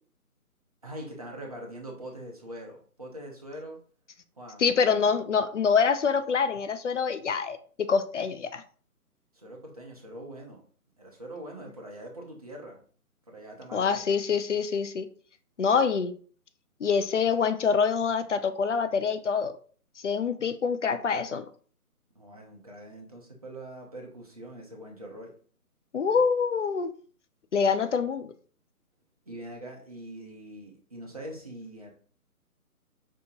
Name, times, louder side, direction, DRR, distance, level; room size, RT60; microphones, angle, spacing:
voice 1, 0.8-3.8 4.4-4.6 9.3-10.6 11.0-12.8 13.3-14.0 22.1-25.3 29.3-31.9, right 1 dB, 25° right, -1 dB, 0.6 m, -43 dB
voice 2, 4.6-8.6 13.7-15.1 15.6-16.1 16.8-19.5 20.0-21.5 25.9-26.9 27.5-28.3, left 6 dB, 55° left, 11 dB, 0.5 m, -25 dB
5.3 x 2.7 x 2.7 m, 0.44 s
figure-of-eight pair, 160°, 45 cm